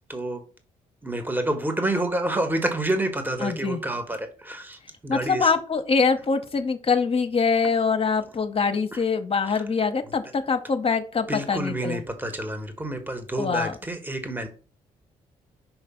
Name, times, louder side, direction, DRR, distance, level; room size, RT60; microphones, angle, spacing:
voice 1, 0.1-0.4 1.0-5.5 8.9-9.0 9.5-9.6 11.3-14.5, right 1 dB, 10° right, 7 dB, 1.3 m, -28 dB
voice 2, 3.4-3.8 5.1-12.0 13.4-13.8, left 5 dB, 40° left, 7 dB, 0.9 m, -24 dB
5.8 x 3.2 x 5.6 m, 0.38 s
hypercardioid pair, 50°, 16 cm